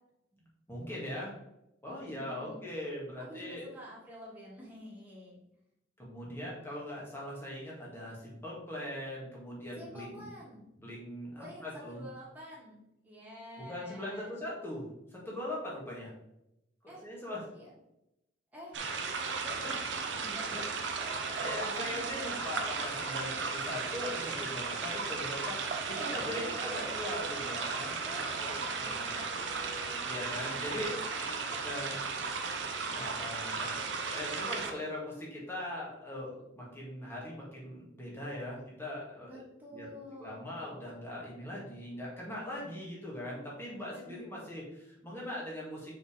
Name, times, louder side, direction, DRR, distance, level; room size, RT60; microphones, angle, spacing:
voice 1, 0.7-1.3 1.8-3.6 6.0-10.3 10.7-12.0 13.7-16.1 16.8-17.4 19.6-19.7 20.5-20.6 21.4-28.0 28.4-29.3 30.0-30.9 31.6-31.9 32.9-39.3 39.7-39.9 40.2-45.9, left 1 dB, 15° left, -5 dB, 2.3 m, -41 dB
voice 2, 1.9-2.6 3.2-5.4 9.8-10.6 11.3-14.4 16.9-17.0 17.5-17.7 18.5-18.8 19.1-20.5 21.9-22.6 23.2-23.3 26.1-26.9 27.8-32.7 39.3-40.5 43.8-44.2, equal, 10° right, -6 dB, 2.6 m, -49 dB
sound 1, 18.7-34.7, right 4 dB, 75° right, 0.9 m, -35 dB
sound 2, 20.8-30.7, right 5 dB, 40° right, 0.4 m, -48 dB
6.3 x 5.1 x 3.6 m, 0.86 s
head